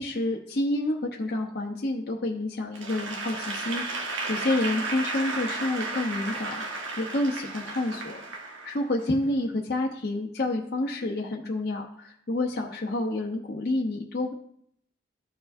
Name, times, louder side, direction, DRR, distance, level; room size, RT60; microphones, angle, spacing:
voice 1, 0.0-6.6 7.0-8.2 8.6-14.3, left 2 dB, 50° left, -1 dB, 0.8 m, -29 dB
Applause / Crowd, 2.7-9.1, right 3 dB, 85° right, 1.3 m, -34 dB
13.5 x 4.7 x 2.6 m, 0.68 s
head